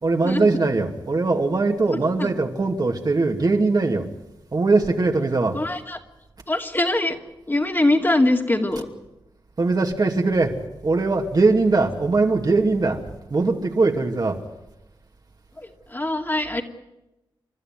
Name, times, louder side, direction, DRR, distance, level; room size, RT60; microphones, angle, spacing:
voice 1, 0.0-4.0 4.5-5.6 9.6-10.5 10.8-13.0 13.3-14.4, right 3 dB, 50° right, 3 dB, 2.6 m, -21 dB
voice 2, 1.9-2.3 5.5-6.0 6.5-7.2 7.5-8.9 15.6-16.6, left 2 dB, 25° left, 3 dB, 2.5 m, -23 dB
29.0 x 12.5 x 9.4 m, 0.97 s
cardioid pair, 70°, 9 cm